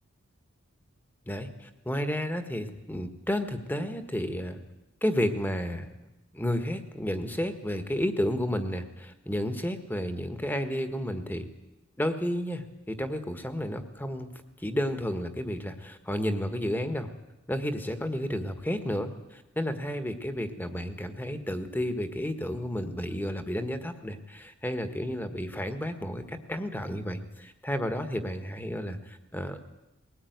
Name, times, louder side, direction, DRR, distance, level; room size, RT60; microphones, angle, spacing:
voice 1, 1.3-4.6 5.0-5.9 6.3-11.5 12.0-14.3 14.6-17.1 17.5-29.6, equal, 10° left, 9 dB, 1.5 m, -31 dB
21.0 x 18.5 x 9.4 m, 0.97 s
head